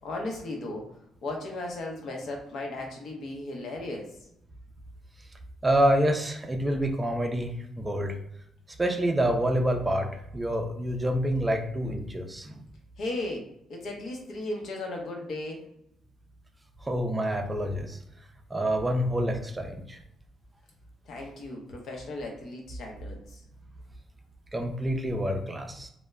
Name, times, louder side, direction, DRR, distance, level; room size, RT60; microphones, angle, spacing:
voice 1, 0.0-0.9 1.2-4.1 13.0-15.6 21.1-23.4, left 2 dB, 70° left, 1 dB, 0.7 m, -36 dB
voice 2, 5.6-8.1 8.8-10.1 10.3-12.6 16.8-18.0 18.5-20.0 24.5-25.9, right 1 dB, 20° right, 3 dB, 0.4 m, -27 dB
2.1 x 2.0 x 3.4 m, 0.75 s
cardioid pair, 90°, 0 cm